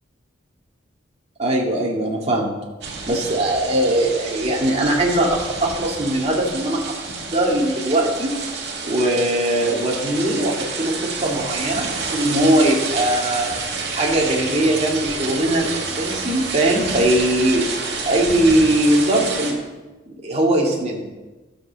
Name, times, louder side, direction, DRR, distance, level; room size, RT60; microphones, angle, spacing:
voice 1, 1.4-2.5 3.1-6.9 7.3-8.4 8.8-13.5 13.9-17.7 18.0-19.6 20.1-21.1, right 1 dB, 35° right, -2 dB, 2.3 m, -20 dB
sound 1, 2.8-19.5, right 4 dB, 60° right, 2.3 m, -29 dB
13.0 x 6.9 x 6.9 m, 1.2 s
head